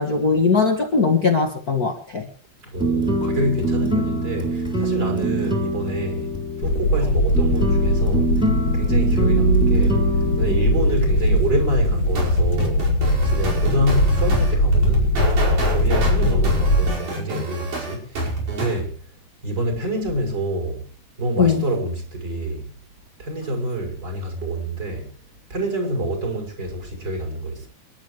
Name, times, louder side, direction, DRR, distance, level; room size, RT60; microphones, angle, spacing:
voice 1, 0.0-2.3 21.4-21.6, left 4 dB, 30° left, 2.3 m, -19 dB
voice 2, 2.6-6.3 6.6-8.3 8.7-10.0 10.4-12.9 13.2-15.2 15.6-18.9 19.4-20.8 21.2-22.7 23.2-25.1 25.5-27.7, right 1 dB, 30° right, 6.6 m, -27 dB
sound 1, 2.8-12.1, right 1 dB, ahead, 3.5 m, -25 dB
sound 2, 6.6-16.9, left 1 dB, 60° left, 3.5 m, -20 dB
sound 3, 12.1-18.8, right 1 dB, 85° right, 6.9 m, -26 dB
29.0 x 12.0 x 3.2 m
omnidirectional pair, 3.5 m